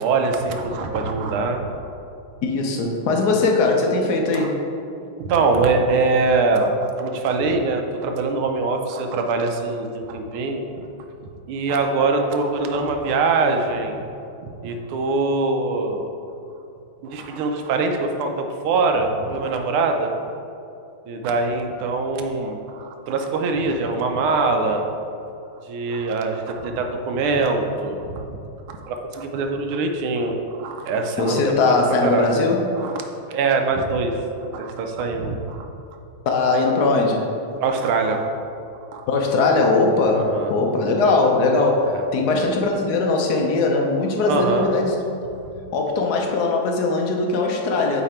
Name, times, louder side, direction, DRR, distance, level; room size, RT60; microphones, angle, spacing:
voice 1, 0.0-1.9 4.3-4.5 5.2-10.7 11.5-14.0 14.4-16.1 17.0-20.1 21.1-24.8 25.7-28.4 28.7-32.3 32.8-34.2 34.5-35.7 37.6-38.3 38.9-39.0 40.1-40.5 41.9-42.0 44.3-44.7, right 3 dB, 85° right, 4 dB, 1.5 m, -23 dB
voice 2, 2.4-4.6 31.2-32.8 36.3-37.3 39.1-45.0 45.7-48.0, left 3 dB, 65° left, 1 dB, 1.0 m, -20 dB
8.3 x 3.2 x 4.3 m, 2.7 s
omnidirectional pair, 2.3 m